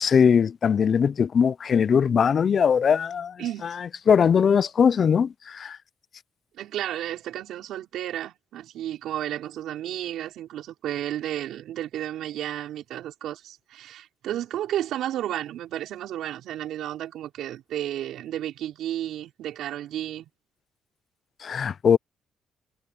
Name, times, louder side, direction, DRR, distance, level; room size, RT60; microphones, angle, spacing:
voice 1, 0.0-5.8 21.4-22.0, left 7 dB, 50° left, 0.5 m, -21 dB
voice 2, 3.4-3.7 6.5-20.3, right 12 dB, 85° right, 5.5 m, -32 dB
cardioid pair, 90°, 0 cm